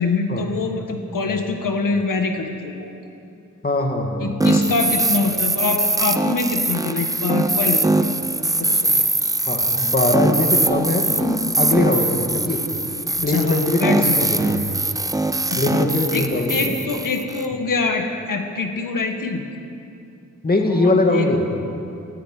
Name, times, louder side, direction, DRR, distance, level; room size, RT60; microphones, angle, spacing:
voice 1, 0.0-2.9 4.2-8.1 8.4-9.0 13.1-14.2 15.5-19.4 20.7-21.3, left 4 dB, 90° left, 4 dB, 1.8 m, -25 dB
voice 2, 3.6-4.3 9.5-12.6 13.2-14.6 15.6-16.8 20.4-21.4, left 2 dB, 30° left, 2 dB, 2.4 m, -21 dB
sound 1, 4.4-17.5, right 2 dB, 10° right, 0.7 m, -22 dB
18.5 x 15.5 x 9.4 m, 2.6 s
wide cardioid pair, 140°, 31 cm